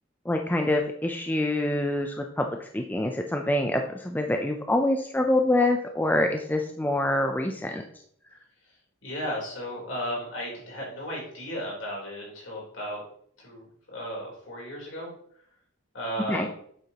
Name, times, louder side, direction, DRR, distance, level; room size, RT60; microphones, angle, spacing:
voice 1, 0.3-7.8 16.3-16.5, left 1 dB, 10° left, 3 dB, 0.4 m, -26 dB
voice 2, 9.0-13.0 13.4-15.1 15.9-16.5, equal, 65° left, -3 dB, 3.6 m, -35 dB
8.3 x 7.7 x 2.9 m, 0.65 s
head